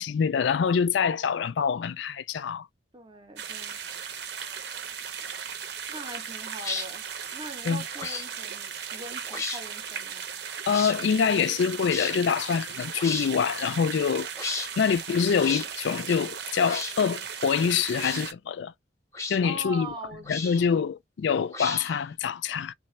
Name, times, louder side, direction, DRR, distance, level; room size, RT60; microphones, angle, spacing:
voice 1, 0.0-2.7 7.7-7.8 10.7-14.3 14.8-18.7 19.3-19.9 20.3-22.7, left 6 dB, 70° left, 0.3 m, -25 dB
voice 2, 2.9-3.8 5.9-7.0 7.3-10.2 19.2-20.8, right 1 dB, 25° right, 0.6 m, -42 dB
sound 1, 3.4-18.3, right 7 dB, 60° right, 0.7 m, -37 dB
sound 2, 6.6-6.9 8.0-8.3 9.3-9.6 10.7-11.0 11.9-12.1 13.0-13.3 14.4-14.7 15.4-15.7 16.6-17.0 17.9-18.3 19.1-19.4 20.3-20.7 21.5-22.0, left 4 dB, 15° left, 0.7 m, -33 dB
3.2 x 3.2 x 3.1 m
head